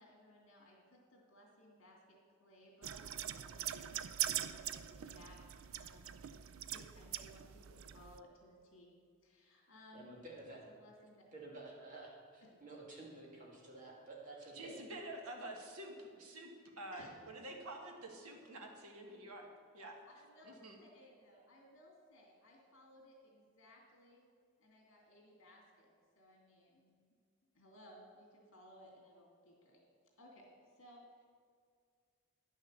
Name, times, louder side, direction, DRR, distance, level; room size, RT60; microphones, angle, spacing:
voice 1, 0.0-5.4 5.7-6.1 6.7-8.9 9.2-10.1 10.7-11.2 16.9-17.1 17.4-17.5 20.0-24.3 24.6-25.9 26.2-27.0 27.5-29.8 30.2-30.5 30.7-31.2, left 1 dB, 60° left, -2 dB, 2.8 m, -61 dB
sound 1, 2.8-8.2, right 11 dB, 65° right, 0.4 m, -42 dB
voice 2, 9.9-10.6 11.3-14.8, right 2 dB, 35° right, -4 dB, 2.3 m, -51 dB
voice 3, 14.5-16.5 16.8-19.5 19.7-20.0 20.4-20.8, right 1 dB, 85° right, 1 dB, 1.6 m, -48 dB
10.5 x 6.4 x 6.8 m, 2.1 s
head